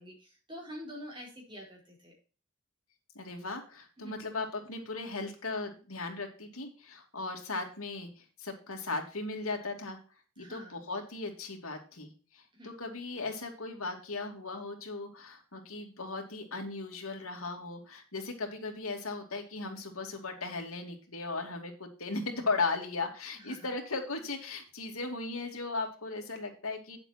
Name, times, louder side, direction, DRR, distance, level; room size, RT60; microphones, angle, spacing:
voice 1, 0.0-2.1 4.0-4.2 10.4-10.8 12.5-12.7 23.4-23.7, equal, 20° right, -3 dB, 4.6 m, -46 dB
voice 2, 3.1-10.0 10.4-27.0, left 3 dB, 80° left, 3 dB, 2.6 m, -37 dB
9.4 x 7.7 x 4.3 m, 0.37 s
head